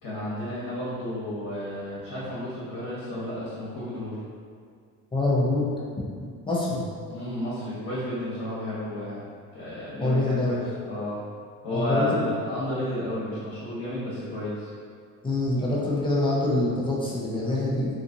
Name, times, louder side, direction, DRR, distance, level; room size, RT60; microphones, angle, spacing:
voice 1, 0.0-4.2 7.1-9.2 9.5-11.2 11.6-14.7, left 1 dB, 55° left, -10 dB, 1.2 m, -32 dB
voice 2, 5.1-5.7 6.5-6.8 10.0-10.6 11.7-12.3 15.2-17.9, left 2 dB, 15° left, -6 dB, 0.7 m, -25 dB
2.8 x 2.4 x 2.6 m, 2.2 s
supercardioid pair, 85°, 39 cm